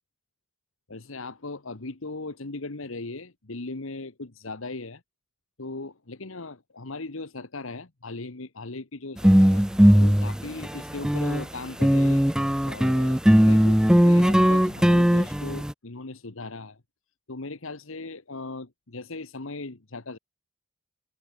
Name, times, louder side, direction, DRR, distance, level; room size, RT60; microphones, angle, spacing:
voice 1, 0.9-5.0 5.6-9.6 10.0-12.2 12.6-13.2 13.5-16.8 17.3-20.2, left 3 dB, 70° left, 1.4 m, -38 dB
sound 1, 9.2-11.4 11.8-15.7, equal, 5° right, 0.5 m, -19 dB
head